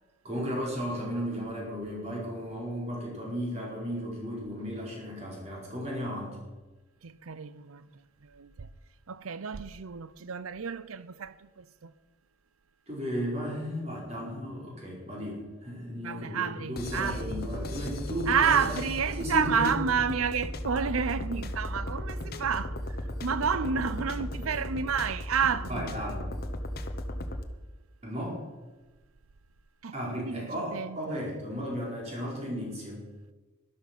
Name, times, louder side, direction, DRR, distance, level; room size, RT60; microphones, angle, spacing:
voice 1, 0.2-6.4 12.9-18.8 19.2-19.7 25.7-26.3 28.0-28.4 29.9-33.1, equal, 30° right, 4.6 m, -34 dB
voice 2, 7.0-7.9 8.2-8.7 9.1-11.9 16.0-17.5 18.3-22.8 23.2-26.0 29.8-31.2, right 6 dB, 85° right, 0.6 m, -30 dB
sound 1, 16.8-27.4, left 1 dB, 45° left, 1.0 m, -36 dB
13.0 x 11.5 x 6.0 m
head